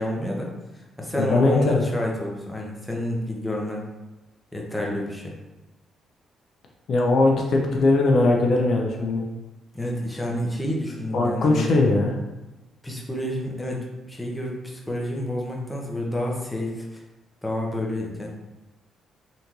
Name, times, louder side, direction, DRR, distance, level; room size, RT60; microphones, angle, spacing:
voice 1, 0.0-3.8 4.5-5.3 9.7-11.9 12.8-17.0 17.4-18.3, left 1 dB, 10° left, -2 dB, 0.7 m, -29 dB
voice 2, 1.1-1.8 6.9-9.2 11.1-12.1, left 2 dB, 60° left, 0 dB, 0.5 m, -20 dB
3.5 x 2.6 x 3.0 m, 1.0 s
cardioid pair, 90°, 0 cm